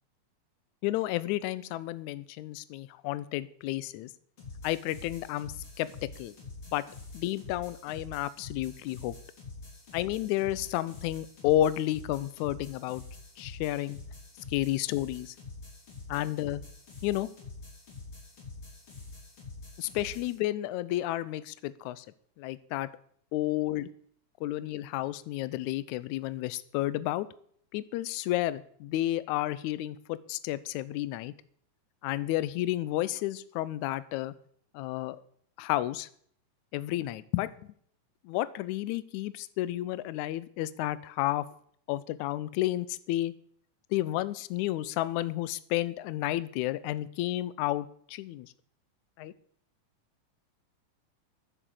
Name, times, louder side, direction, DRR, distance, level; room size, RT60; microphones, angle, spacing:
voice 1, 0.8-4.1 4.6-5.5 5.8-5.9 6.2-6.3 6.7-6.8 7.1-9.2 9.9-13.0 13.4-14.0 14.5-15.3 16.1-16.6 17.0-17.3 19.8-22.1 22.4-22.9 23.3-23.9 24.4-27.3 27.7-31.3 32.0-34.3 34.7-35.2 35.6-36.1 36.7-37.5 38.3-41.5 41.9-43.3 43.9-48.5 49.2-49.3, left 15 dB, 80° left, 16 dB, 1.7 m, -31 dB
sound 1, 4.4-20.4, left 3 dB, 35° left, 3.9 m, -46 dB
10.0 x 7.0 x 7.5 m, 0.62 s
omnidirectional pair, 4.0 m